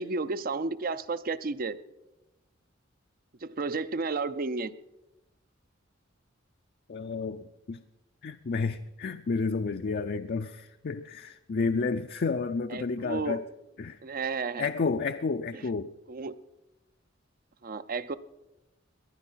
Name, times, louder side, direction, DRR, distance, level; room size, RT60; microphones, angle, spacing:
voice 1, 0.0-1.8 3.4-4.7 12.7-13.4 14.0-14.7 15.5-15.6 16.1-16.3 17.6-18.2, right 4 dB, 45° right, 14 dB, 0.6 m, -32 dB
voice 2, 6.9-7.8 8.2-13.4 13.8-14.0 14.6-15.9, left 4 dB, 50° left, 7 dB, 0.5 m, -31 dB
18.5 x 11.5 x 5.7 m, 0.97 s
head